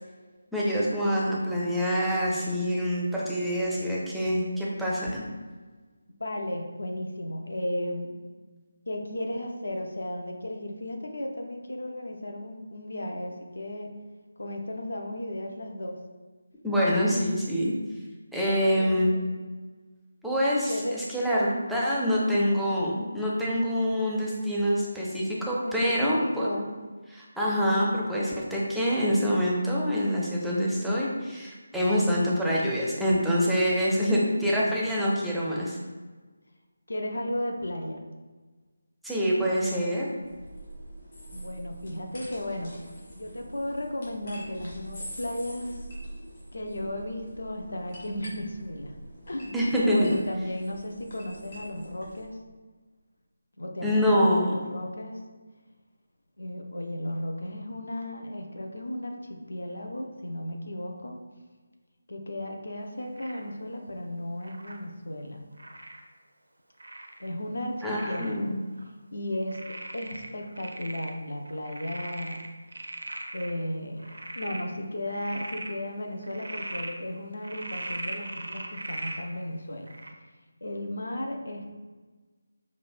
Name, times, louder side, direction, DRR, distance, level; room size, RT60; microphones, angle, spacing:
voice 1, 0.5-5.2 16.6-17.7 18.3-19.1 20.2-26.5 27.1-35.8 39.0-40.1 49.5-50.1 53.8-54.5 67.8-68.6, equal, ahead, -7 dB, 0.4 m, -26 dB
voice 2, 6.2-8.2 8.9-13.9 14.4-16.0 18.8-19.2 20.7-21.0 25.6-26.7 34.3-34.8 36.9-38.0 41.3-42.8 43.1-45.9 46.5-48.9 49.3-52.4 53.6-55.2 56.4-61.2 62.1-65.4 67.2-68.6 69.1-72.4 73.3-79.9 80.6-81.7, left 1 dB, 60° left, 3 dB, 0.5 m, -35 dB
sound 1, 40.2-52.2, equal, 40° left, 1.2 m, -45 dB
Frog, 63.2-63.5 64.4-64.8 65.6-66.0 66.8-67.3 67.8-68.3 68.8-68.9 69.5-71.1 71.5-73.5 74.0-74.6 75.1-75.7 76.2-76.9 77.4-79.2 79.9-80.1, right 1 dB, 65° right, 0.4 m, -39 dB
4.8 x 2.0 x 2.4 m, 1.3 s
figure-of-eight pair, 155°, 0 cm